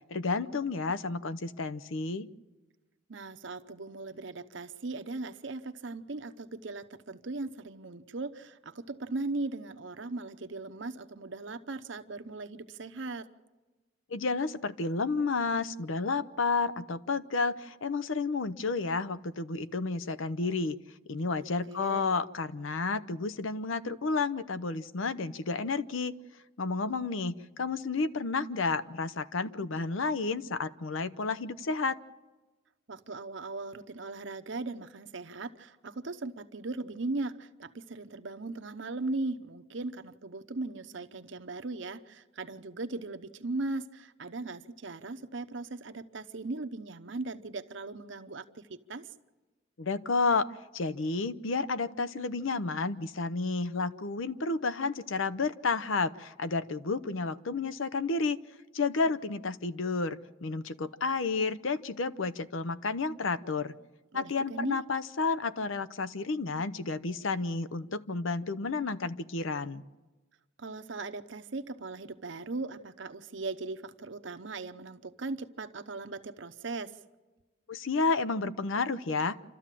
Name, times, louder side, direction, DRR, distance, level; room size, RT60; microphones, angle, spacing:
voice 1, 0.1-2.3 14.1-20.8 21.1-26.1 26.6-32.0 49.8-58.4 58.7-63.7 64.1-69.8 77.7-79.4, left 4 dB, 70° left, 14 dB, 0.7 m, -31 dB
voice 2, 3.1-13.3 21.7-22.1 32.9-49.1 64.1-64.8 70.6-76.9, right 3 dB, 65° right, 9 dB, 0.8 m, -38 dB
28.0 x 13.0 x 7.6 m, 1.2 s
head